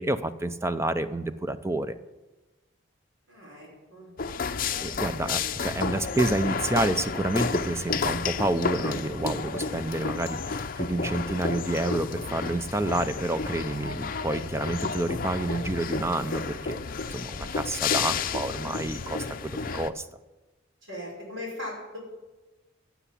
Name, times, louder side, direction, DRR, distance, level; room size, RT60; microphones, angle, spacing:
voice 1, 0.0-2.0 4.8-16.8 17.1-20.1, right 2 dB, 15° right, 11 dB, 0.6 m, -29 dB
voice 2, 3.3-4.1 5.2-5.3 20.9-22.0, left 1 dB, 75° right, -3 dB, 5.6 m, -39 dB
sound 1, 4.2-19.9, left 5 dB, 45° left, 0.6 m, -31 dB
16.0 x 7.1 x 8.4 m, 1.1 s
head